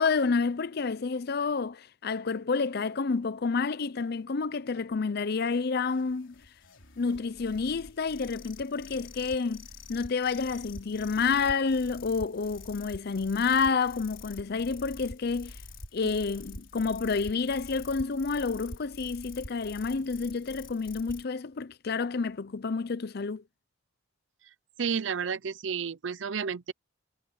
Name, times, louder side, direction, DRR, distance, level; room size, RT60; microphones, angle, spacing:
voice 1, 0.0-6.3 7.0-15.6 15.9-23.4, left 4 dB, 55° left, 0.6 m, -29 dB
sound 1, 5.9-21.2, left 3 dB, 80° left, 3.7 m, -47 dB
voice 2, 24.8-26.7, right 6 dB, 75° right, 0.6 m, -31 dB
head